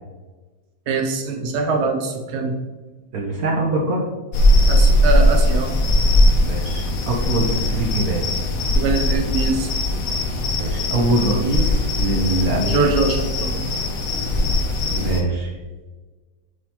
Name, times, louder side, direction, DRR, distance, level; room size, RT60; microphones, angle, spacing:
voice 1, 0.9-2.5 4.7-5.7 8.7-9.7 12.7-13.5, right 4 dB, 75° right, 3 dB, 0.6 m, -23 dB
voice 2, 3.1-4.1 6.4-8.3 10.6-12.8 14.9-15.5, right 1 dB, 60° right, 0 dB, 1.2 m, -23 dB
sound 1, 4.3-15.2, left 1 dB, 55° left, 1.1 m, -19 dB
9.2 x 3.8 x 2.9 m, 1.3 s
omnidirectional pair, 2.0 m